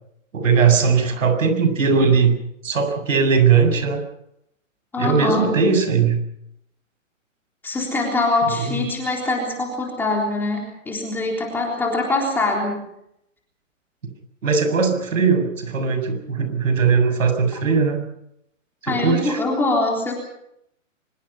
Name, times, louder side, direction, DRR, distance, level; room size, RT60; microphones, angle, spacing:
voice 1, 0.3-2.4 2.6-4.0 5.0-6.2 8.6-8.8 14.4-18.0 18.8-19.4, right 5 dB, 80° right, 8 dB, 7.4 m, -19 dB
voice 2, 4.9-5.4 7.6-12.8 18.9-20.1, left 2 dB, 5° left, -1 dB, 3.7 m, -23 dB
24.5 x 22.5 x 5.7 m, 0.75 s
hypercardioid pair, 170°, 39 cm